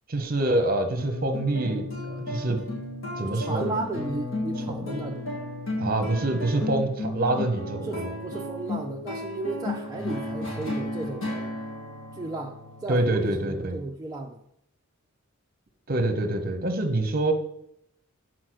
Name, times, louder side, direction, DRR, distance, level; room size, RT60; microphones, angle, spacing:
voice 1, 0.1-2.6 3.2-3.7 4.8-4.9 5.8-8.1 12.9-13.8 15.9-17.3, right 2 dB, 45° right, 7 dB, 1.0 m, -26 dB
sound 1, 1.0-13.7, left 1 dB, 70° left, 1.9 m, -34 dB
voice 2, 3.2-5.3 7.8-11.5 12.1-14.4, right 2 dB, 15° right, -1 dB, 0.5 m, -34 dB
6.3 x 4.2 x 6.3 m, 0.75 s
head